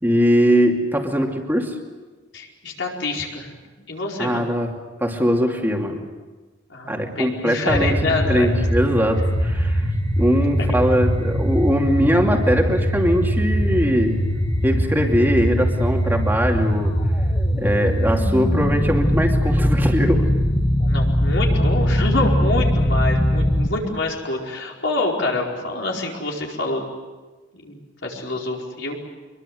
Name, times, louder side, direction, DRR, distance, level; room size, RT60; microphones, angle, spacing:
voice 1, 0.0-1.7 4.2-6.0 6.9-9.9 10.2-14.2 14.6-16.9 17.6-20.3, equal, 10° right, 1 dB, 2.7 m, -21 dB
voice 2, 2.3-3.5 3.9-4.4 6.7-8.5 10.7-10.8 20.8-26.9 27.6-29.0, left 2 dB, 70° left, -1 dB, 4.9 m, -26 dB
sound 1, 7.7-23.7, equal, 20° left, 1.4 m, -21 dB
25.0 x 22.5 x 7.9 m, 1.3 s
head